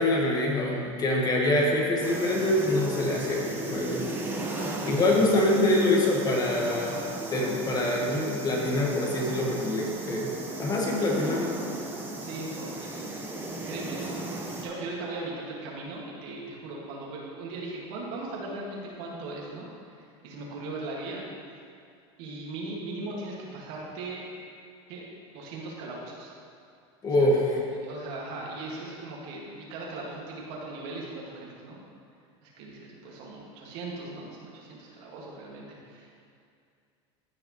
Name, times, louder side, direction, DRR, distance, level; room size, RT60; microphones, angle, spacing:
voice 1, 0.0-4.1 4.9-7.0 7.3-10.3 10.6-11.5 27.0-27.6, left 1 dB, 25° left, -1 dB, 1.4 m, -25 dB
sound 1, 2.0-14.7, right 2 dB, 15° right, 1.1 m, -36 dB
voice 2, 4.5-5.2 12.2-13.3 13.6-14.3 14.6-19.7 20.0-21.2 22.2-24.3 24.9-25.0 25.3-26.3 27.0-27.3 27.7-31.8 32.4-36.2, right 2 dB, 65° right, -3 dB, 2.0 m, -38 dB
14.0 x 5.0 x 3.1 m, 2.3 s
supercardioid pair, 115°, 15 cm